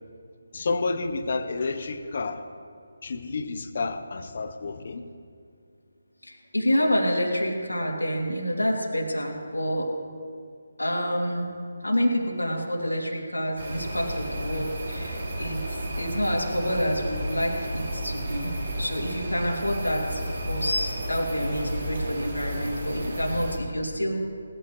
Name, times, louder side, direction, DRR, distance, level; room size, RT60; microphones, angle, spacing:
voice 1, 0.5-2.4 3.0-5.1, left 3 dB, 50° left, 9 dB, 1.0 m, -30 dB
voice 2, 6.2-9.8 10.8-11.5 11.8-24.2, equal, 90° left, -1 dB, 2.9 m, -28 dB
sound 1, 13.6-23.6, right 1 dB, 55° right, 3.0 m, -32 dB
19.0 x 13.5 x 3.2 m, 2.2 s
figure-of-eight pair, 150°, 0 cm